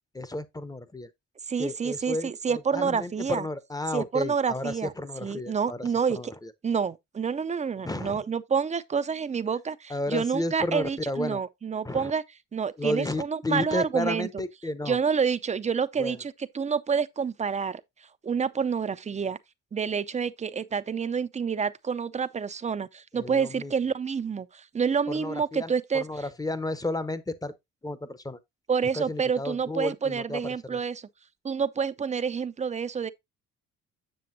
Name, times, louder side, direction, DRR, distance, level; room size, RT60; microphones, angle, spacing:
voice 1, 0.1-1.1 1.6-6.5 7.8-8.2 9.9-11.4 11.8-12.1 12.8-15.0 16.0-16.2 23.1-23.7 25.1-27.5 27.8-28.4 28.9-30.8, left 2 dB, 10° left, 0.7 m, -32 dB
voice 2, 1.5-3.4 3.9-4.9 5.2-6.3 6.6-12.2 12.5-14.3 14.9-17.8 18.2-19.4 19.7-26.0 28.7-31.1 31.4-33.1, right 6 dB, 25° right, 0.5 m, -28 dB
7.8 x 6.9 x 2.6 m
cardioid pair, 90°, 30 cm